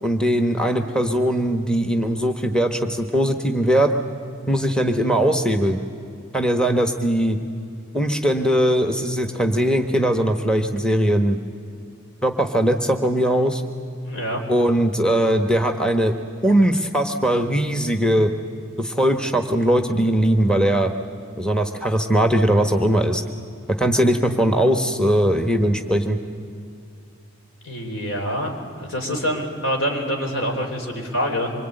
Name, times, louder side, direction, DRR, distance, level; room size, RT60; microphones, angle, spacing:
voice 1, 0.0-3.9 4.5-5.8 6.3-7.4 7.9-11.4 12.2-13.6 14.5-16.2 16.4-18.3 18.8-20.9 21.4-23.2 23.8-26.2, right 1 dB, 5° left, 6 dB, 1.1 m, -20 dB
voice 2, 14.0-14.4 27.6-28.5 28.8-31.5, equal, 70° left, 3 dB, 3.9 m, -25 dB
25.5 x 23.5 x 9.0 m, 2.4 s
head